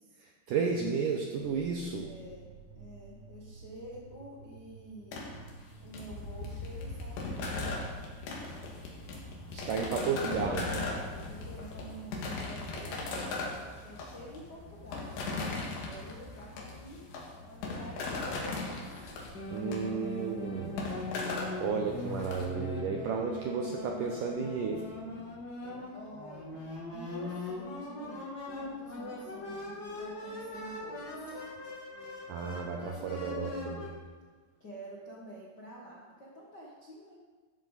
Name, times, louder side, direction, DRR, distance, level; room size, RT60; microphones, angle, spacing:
voice 1, 0.2-2.1 9.5-10.9 19.5-20.8 21.6-24.8 32.3-33.9, right 5 dB, 75° right, 2 dB, 1.9 m, -33 dB
sound 1, 1.4-13.9, right 5 dB, 50° right, 2.6 m, -54 dB
voice 2, 2.0-2.4 2.7-5.4 5.8-8.0 10.6-13.1 13.8-17.1 17.5-19.2 19.9-20.3 25.9-26.6 26.9-31.4 32.4-33.6 34.6-37.2, right 1 dB, 55° left, -6 dB, 1.2 m, -49 dB
sound 2, 5.1-22.4, left 3 dB, 80° left, 4.2 m, -38 dB
sound 3, 19.3-33.9, left 2 dB, 30° left, 2.2 m, -40 dB
13.5 x 13.0 x 4.1 m, 1.4 s
omnidirectional pair, 4.9 m